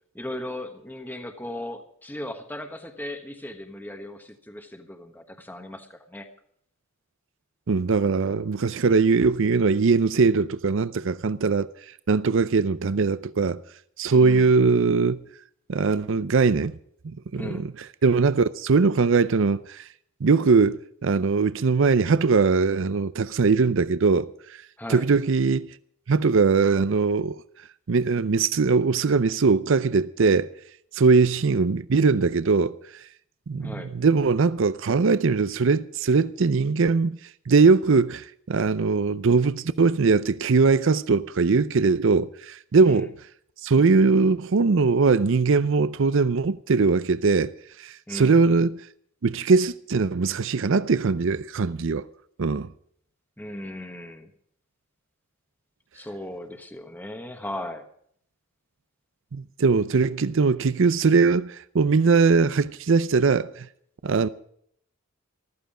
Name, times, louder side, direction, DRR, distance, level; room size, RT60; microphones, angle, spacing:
voice 1, 0.1-6.3 14.1-14.5 17.3-17.7 24.8-25.0 33.6-33.9 42.8-43.1 48.1-48.4 53.4-54.3 55.9-57.9, left 1 dB, 10° left, 1.2 m, -37 dB
voice 2, 7.7-13.6 14.0-15.2 15.7-16.8 17.0-19.9 20.2-24.6 24.9-25.7 26.1-27.4 27.9-30.5 30.9-33.1 33.5-37.2 37.5-43.1 43.6-47.5 47.8-48.8 49.2-52.0 52.4-52.7 59.3-63.7 64.0-64.3, right 4 dB, 65° right, 0.5 m, -21 dB
14.5 x 14.0 x 5.0 m
head